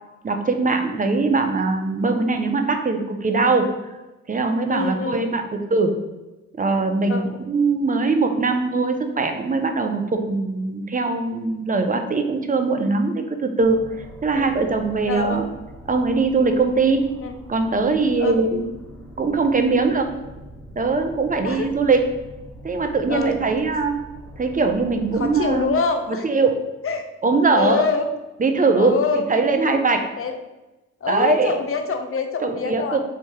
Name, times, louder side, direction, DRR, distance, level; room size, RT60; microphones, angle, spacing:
voice 1, 0.2-3.6 4.3-6.0 6.6-13.8 14.2-15.5 15.9-17.0 17.5-18.7 19.2-20.1 20.8-22.0 22.6-24.0 24.4-25.7 26.1-26.6 27.2-27.8 28.4-30.0 31.1-31.6 32.4-33.0, right 3 dB, 25° right, 5 dB, 0.6 m, -21 dB
voice 2, 4.7-5.2 7.1-7.2 14.3-14.5 15.1-15.4 17.2-17.3 18.2-18.4 21.4-21.7 23.1-23.4 25.1-26.2 26.8-27.1 27.5-28.1 28.7-29.3 30.2-30.4 31.0-33.0, left 5 dB, 45° left, 6 dB, 0.6 m, -25 dB
sound 1, 13.6-25.8, equal, 10° left, 1.2 m, -42 dB
3.3 x 2.7 x 4.6 m, 1.1 s
supercardioid pair, 55°, 32 cm